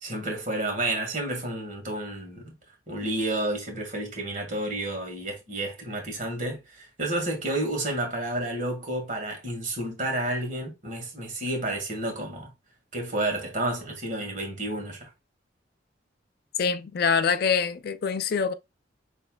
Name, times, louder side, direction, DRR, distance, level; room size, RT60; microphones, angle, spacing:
voice 1, 0.0-2.5 2.9-12.5 12.9-15.1, right 1 dB, 45° right, 1.9 m, -30 dB
voice 2, 16.6-18.5, left 6 dB, 55° left, 0.4 m, -25 dB
6.7 x 3.2 x 2.3 m
head